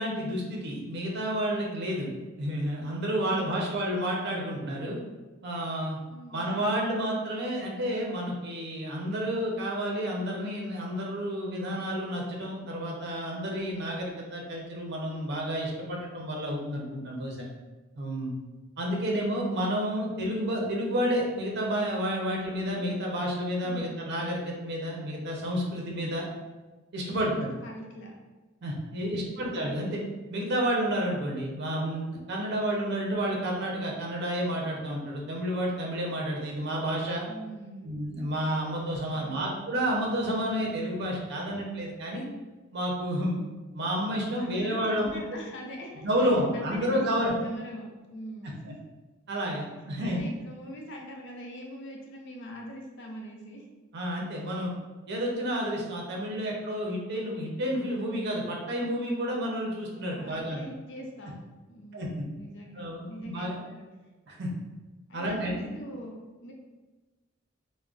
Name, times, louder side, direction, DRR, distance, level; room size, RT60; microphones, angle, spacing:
voice 1, 0.0-2.1 2.4-5.0 5.4-6.0 6.3-17.5 18.0-18.3 18.8-26.3 26.9-27.5 28.6-30.0 30.3-37.2 37.8-42.2 42.7-43.4 43.7-45.4 46.0-47.3 48.7-48.8 49.3-50.2 53.9-54.7 55.1-60.6 61.9-62.2 62.7-63.6 64.3-64.5 65.1-65.7, equal, 55° right, -1 dB, 0.5 m, -30 dB
voice 2, 3.3-3.7 6.1-6.6 23.6-23.9 27.0-27.1 27.6-28.1 29.0-29.5 37.3-38.0 39.1-39.5 44.4-47.0 47.3-48.8 50.0-53.7 60.1-61.4 61.7-63.8 65.1-66.5, equal, 65° left, 0 dB, 0.6 m, -43 dB
3.6 x 2.1 x 2.3 m, 1.2 s
head